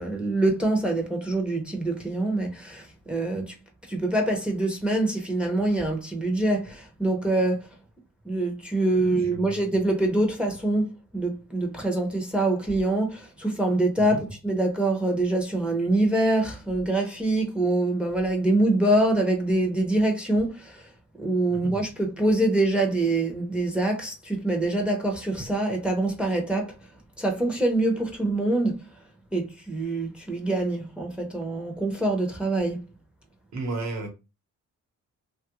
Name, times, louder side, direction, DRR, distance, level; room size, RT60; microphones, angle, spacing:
voice 1, 0.0-3.6 3.9-7.7 8.2-20.9 21.2-26.7 27.2-28.9 29.3-32.8, right 2 dB, 5° right, 0.6 m, -25 dB
voice 2, 9.0-9.5 14.0-14.2 21.5-21.7 33.5-34.1, right 2 dB, 60° right, 1.0 m, -33 dB
3.1 x 2.3 x 2.9 m
wide cardioid pair, 170°, 31 cm